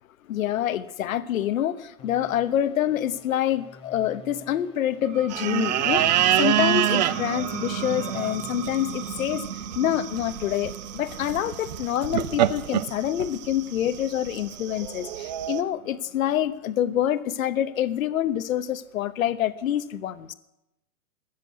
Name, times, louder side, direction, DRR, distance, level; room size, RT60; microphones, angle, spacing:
voice 1, 0.3-6.0 6.4-9.5 9.7-20.3, left 11 dB, 70° left, 12 dB, 1.1 m, -26 dB
sound 1, 2.0-9.5, left 2 dB, 10° left, 1.4 m, -50 dB
sound 2, 5.0-16.3, right 8 dB, 60° right, 3.6 m, -36 dB
sound 3, 5.3-15.6, right 12 dB, 30° right, 0.5 m, -27 dB
20.0 x 7.7 x 8.4 m, 0.91 s
hypercardioid pair, 145°, 43 cm